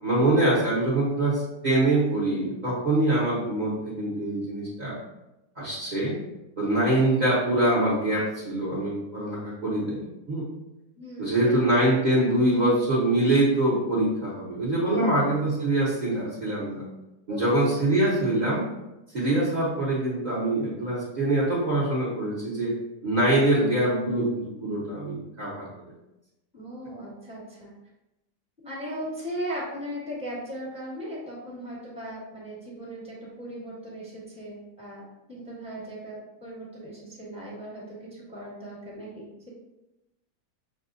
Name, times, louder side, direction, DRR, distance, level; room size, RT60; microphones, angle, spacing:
voice 1, 0.0-5.0 5.6-6.2 6.6-10.4 11.2-16.8 17.3-18.6 19.1-22.7 23.0-24.3 24.6-25.9, right 1 dB, 35° right, -9 dB, 0.9 m, -24 dB
voice 2, 11.0-11.7 14.9-15.2 17.3-17.8 26.5-27.7 28.6-39.5, equal, 5° right, -7 dB, 1.3 m, -38 dB
6.2 x 2.4 x 2.6 m, 0.95 s
omnidirectional pair, 1.8 m